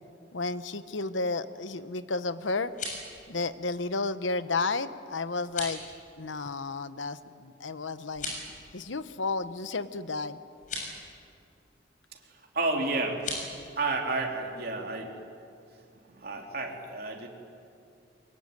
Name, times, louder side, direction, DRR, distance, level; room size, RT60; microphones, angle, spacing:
voice 1, 0.3-2.7 3.3-5.8 6.2-8.3 8.7-10.4, left 3 dB, 85° left, 13 dB, 1.0 m, -32 dB
sound 1, 2.5-3.1 5.4-5.8 8.1-8.5 10.6-10.9 13.1-13.5, left 3 dB, 40° left, 7.0 m, -36 dB
voice 2, 12.3-15.2 16.1-17.3, right 3 dB, 50° right, 2 dB, 3.4 m, -31 dB
23.5 x 22.5 x 9.8 m, 2.5 s
head